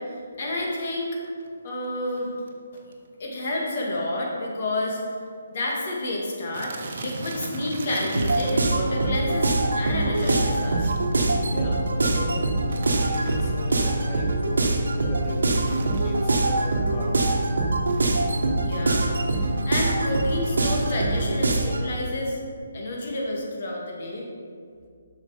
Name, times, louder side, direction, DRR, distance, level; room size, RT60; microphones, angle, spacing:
voice 1, 0.4-1.1 1.6-2.3 2.7-2.8 3.2-5.1 5.5-10.9 18.6-22.4 22.7-24.3, left 1 dB, 50° left, -2 dB, 2.0 m, -29 dB
sound 1, 1.2-1.5 2.2-2.3 2.5-2.6 2.8-3.1 3.4-3.6 3.9-4.0 4.7-4.8 5.0-5.3 5.6-5.7 6.5-8.8 10.1-11.3 12.7-13.7 15.2-16.3 17.9-18.2, right 3 dB, 50° right, 1.0 m, -37 dB
sound 2, 8.1-21.9, right 2 dB, 80° right, 1.1 m, -24 dB
voice 2, 11.4-12.8 13.1-17.3, left 2 dB, 30° left, -1 dB, 1.4 m, -36 dB
7.5 x 5.8 x 4.9 m, 2.2 s
figure-of-eight pair, 150°, 0 cm